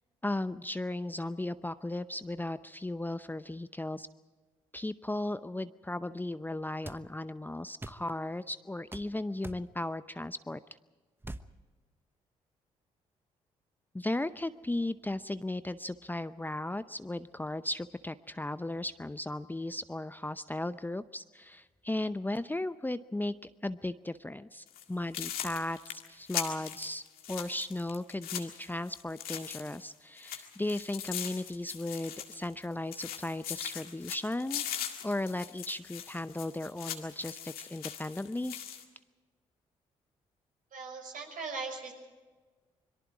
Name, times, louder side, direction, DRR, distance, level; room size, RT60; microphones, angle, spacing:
voice 1, 0.2-4.1 4.7-10.6 13.9-23.3 23.6-27.0 27.3-34.6 35.0-38.6, left 1 dB, 10° left, 13 dB, 0.7 m, -36 dB
sound 1, 6.8-7.0 7.8-8.0 8.9-9.1 9.4-9.7 11.2-11.5, right 2 dB, 15° right, 1.0 m, -42 dB
sound 2, 24.7-24.8 25.1-29.9 30.2-32.7 32.9-38.8, left 10 dB, 70° left, 1.9 m, -40 dB
voice 2, 40.7-41.9, right 4 dB, 60° right, 2 dB, 5.9 m, -39 dB
25.5 x 22.5 x 4.9 m, 1.3 s
hypercardioid pair, 45°, 16 cm